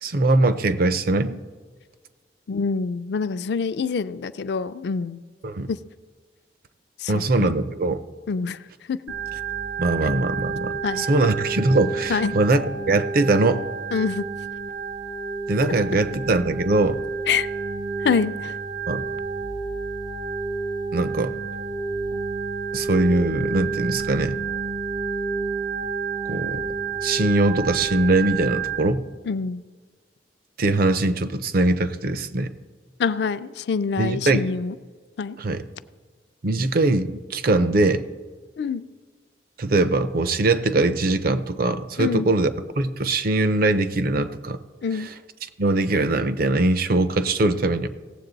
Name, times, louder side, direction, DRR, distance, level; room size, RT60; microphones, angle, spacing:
voice 1, 0.0-1.4 5.4-5.7 7.1-8.0 9.8-13.6 15.5-17.0 18.9-19.0 20.9-21.3 22.7-24.4 26.3-26.7 27.0-29.0 30.6-32.5 34.0-34.4 35.4-35.6 36.4-38.0 39.6-44.6 44.9-45.1 45.6-47.9, right 2 dB, 55° right, 12 dB, 0.6 m, -21 dB
voice 2, 2.5-5.2 5.7-5.8 7.0-7.5 8.3-8.6 8.9-9.0 10.8-11.2 12.1-12.3 13.9-14.2 17.3-17.5 18.0-18.5 29.3-29.6 33.0-34.8 35.2-35.4 38.6-38.8 42.0-42.3 44.8-45.1, left 5 dB, 65° left, 13 dB, 0.4 m, -25 dB
Organ, 9.1-28.8, right 5 dB, 80° right, 1.5 m, -30 dB
17.0 x 7.5 x 4.0 m, 1.5 s
head